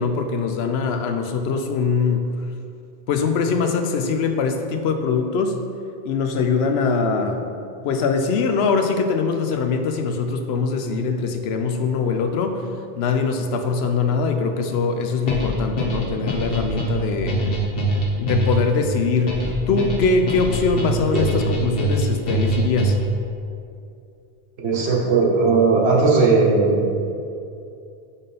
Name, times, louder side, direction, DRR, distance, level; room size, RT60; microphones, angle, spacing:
voice 1, 0.0-2.5 3.1-5.6 6.0-7.5 7.8-12.7 13.0-17.4 18.2-23.0, left 4 dB, 80° left, 6 dB, 0.8 m, -22 dB
sound 1, 15.3-23.2, right 1 dB, 65° left, 1.1 m, -23 dB
voice 2, 24.6-26.9, right 4 dB, 85° right, -2 dB, 1.3 m, -17 dB
5.6 x 3.6 x 5.5 m, 2.5 s
omnidirectional pair, 1.1 m